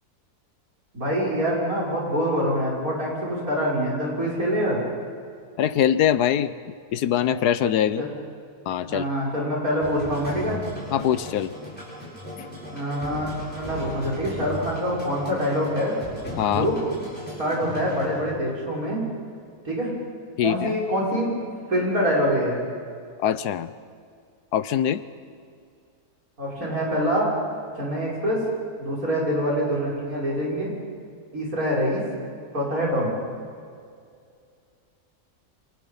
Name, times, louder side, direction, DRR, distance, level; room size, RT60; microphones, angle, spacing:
voice 1, 0.9-4.8 8.0-8.1 8.9-10.6 12.7-13.3 13.6-15.9 16.5-16.8 17.4-19.0 19.6-19.9 20.4-21.3 21.7-22.6 26.4-27.3 27.8-28.4 28.8-30.7 31.3-32.0 32.5-33.1, equal, 65° right, -4 dB, 6.9 m, -25 dB
voice 2, 5.6-6.5 6.9-8.0 8.7-9.0 10.9-11.5 12.4-12.5 16.4-16.7 20.4-20.7 23.2-23.7 24.5-25.0, left 10 dB, 80° left, 14 dB, 1.4 m, -23 dB
sound 1, 9.8-18.2, left 1 dB, 5° left, 7.5 m, -37 dB
29.5 x 26.0 x 5.5 m, 2.3 s
omnidirectional pair, 1.7 m